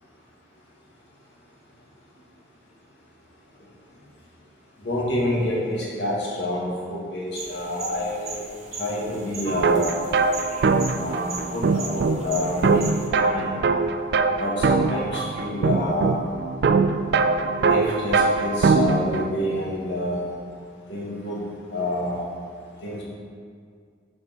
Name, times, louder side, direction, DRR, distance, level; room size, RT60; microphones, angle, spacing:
voice 1, 4.8-8.4 8.8-10.0 10.9-13.5 14.3-16.2 17.6-20.3 20.9-22.3 22.8-23.0, left 1 dB, 65° left, -6 dB, 2.0 m, -28 dB
sound 1, 7.3-13.1, right 3 dB, 35° right, 0.9 m, -38 dB
sound 2, 9.5-19.3, right 4 dB, 55° right, 0.3 m, -22 dB
6.4 x 6.1 x 4.6 m, 2.1 s
head